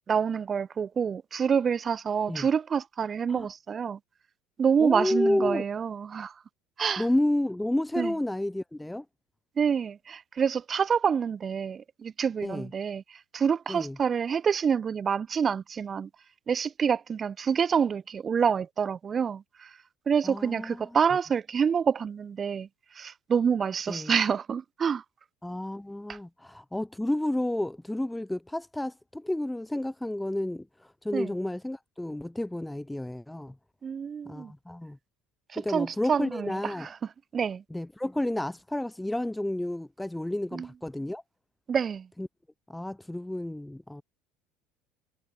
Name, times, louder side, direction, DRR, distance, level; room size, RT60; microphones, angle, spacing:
voice 1, 0.1-4.0 4.6-6.3 6.8-7.0 8.0-8.1 9.6-16.1 16.5-19.7 20.1-22.7 23.0-25.0 26.1-26.2 31.1-31.3 33.8-34.5 35.5-36.9 37.3-37.6 40.5-40.7 41.7-42.1, right 7 dB, 30° right, 0.7 m, -27 dB
voice 2, 4.8-5.6 7.0-9.0 12.4-12.7 13.7-14.0 20.2-20.9 23.9-24.1 25.4-33.5 34.3-35.0 35.6-36.9 37.7-41.2 42.2-42.3 42.7-44.0, left 1 dB, 5° left, 0.4 m, -31 dB
figure-of-eight pair, 65°, 0 cm